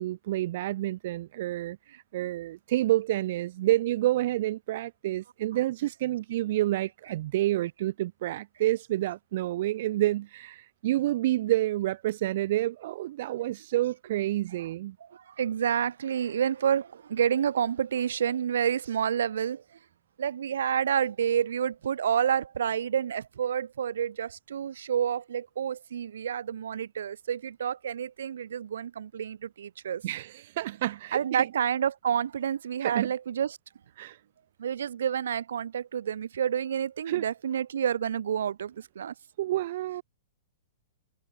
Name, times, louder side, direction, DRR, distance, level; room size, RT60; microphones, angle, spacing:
voice 1, 0.0-14.9 30.0-31.2 32.8-33.1 34.0-34.2 37.1-37.2 39.4-40.0, right 15 dB, 50° right, 1.6 m, -29 dB
voice 2, 15.0-19.8 20.2-30.0 31.1-33.6 34.6-39.1, right 8 dB, 80° right, 2.3 m, -29 dB
hypercardioid pair, 155°, 0 cm